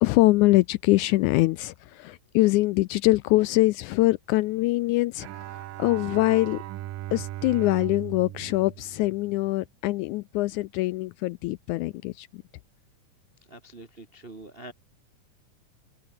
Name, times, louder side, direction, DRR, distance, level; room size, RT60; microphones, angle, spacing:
voice 1, 0.0-6.6 7.1-12.4, left 19 dB, 80° left, 1.8 m, -23 dB
Bowed string instrument, 5.2-9.6, right 15 dB, 90° right, 2.7 m, -38 dB
voice 2, 13.4-14.7, right 2 dB, 40° right, 0.8 m, -44 dB
open air
omnidirectional pair, 3.8 m